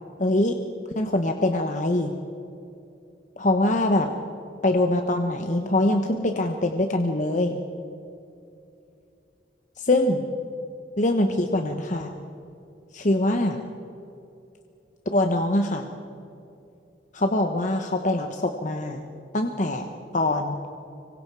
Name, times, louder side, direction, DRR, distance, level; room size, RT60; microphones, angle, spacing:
voice 1, 0.2-0.6 1.0-2.1 3.4-4.1 4.6-7.6 9.8-10.2 11.0-12.1 12.9-13.6 15.1-15.9 17.1-19.0 19.3-20.6, left 1 dB, 45° left, 4 dB, 1.2 m, -23 dB
25.5 x 23.5 x 4.8 m, 2.6 s
head